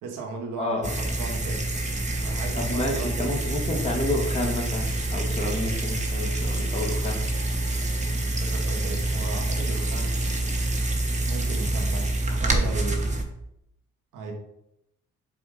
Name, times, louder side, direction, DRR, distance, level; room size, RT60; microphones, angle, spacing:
voice 1, 0.0-1.7 2.2-3.3 8.0-10.2 11.3-13.3 14.1-14.3, right 3 dB, 85° right, 2 dB, 1.3 m, -36 dB
voice 2, 0.6-0.9 2.6-7.2, left 1 dB, 20° left, -1 dB, 1.7 m, -30 dB
sound 1, 0.8-13.2, right 2 dB, 25° right, 1.2 m, -27 dB
7.7 x 2.6 x 5.0 m, 0.80 s
cardioid pair, 90°, 30 cm